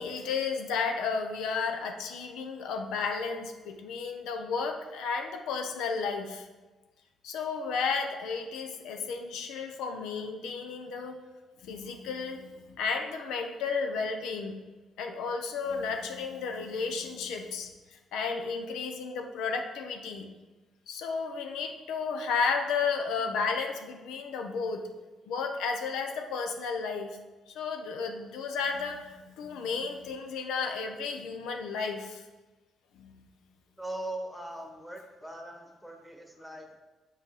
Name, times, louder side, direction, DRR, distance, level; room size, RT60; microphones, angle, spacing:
voice 1, 0.0-6.5 7.2-11.2 11.6-14.6 15.0-17.7 18.1-20.3 20.9-24.9 25.3-27.2 27.5-32.2 32.9-33.3, left 5 dB, 90° left, 4 dB, 0.6 m, -33 dB
voice 2, 33.8-36.7, right 1 dB, ahead, 2 dB, 1.2 m, -40 dB
6.5 x 4.0 x 4.8 m, 1.2 s
cardioid pair, 90°, 0 cm